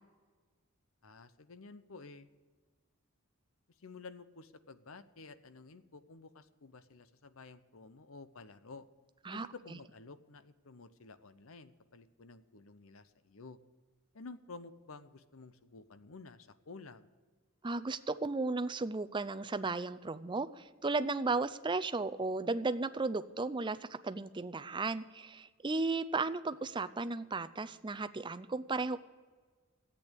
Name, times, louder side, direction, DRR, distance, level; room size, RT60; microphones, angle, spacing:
voice 1, 1.0-2.3 3.8-8.9 9.3-13.6 14.1-17.1, left 3 dB, 70° left, 13 dB, 0.8 m, -52 dB
voice 2, 17.6-23.8 24.0-29.0, right 3 dB, 20° right, 12 dB, 0.5 m, -35 dB
14.0 x 8.6 x 8.1 m, 1.4 s
head